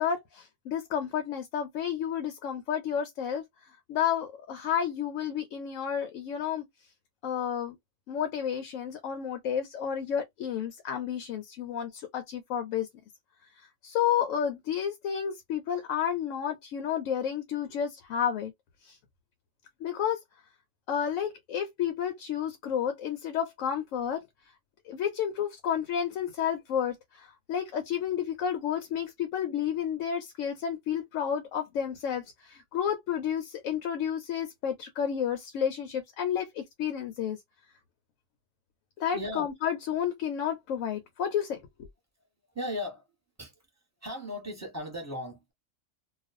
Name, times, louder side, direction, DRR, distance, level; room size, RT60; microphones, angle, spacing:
voice 1, 0.0-3.4 3.9-6.6 7.2-7.8 8.1-12.9 13.8-18.5 18.8-19.0 19.8-20.2 20.9-24.2 24.8-37.4 39.0-41.6, left 8 dB, 85° left, 1.0 m, -31 dB
voice 2, 39.1-39.5 42.5-43.0 43.4-43.5 44.0-45.5, left 1 dB, 15° right, 1.0 m, -36 dB
2.4 x 2.3 x 2.5 m
omnidirectional pair, 1.3 m